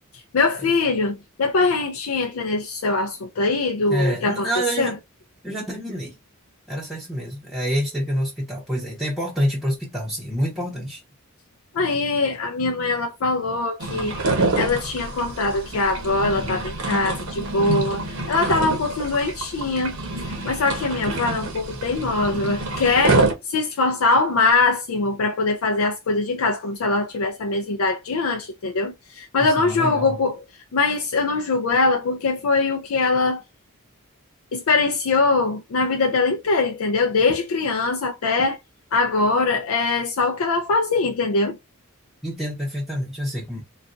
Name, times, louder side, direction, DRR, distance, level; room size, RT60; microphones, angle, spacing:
voice 1, 0.3-4.9 11.7-14.1 14.6-20.0 20.2-30.4 30.7-33.4 34.5-38.6 38.9-41.6, left 3 dB, 70° left, 0.4 m, -22 dB
voice 2, 3.9-4.9 5.4-6.1 6.7-11.0 29.4-30.2 42.2-43.6, equal, ahead, 0.7 m, -27 dB
sound 1, 13.8-23.3, right 2 dB, 75° right, 0.8 m, -26 dB
4.0 x 2.3 x 2.5 m
head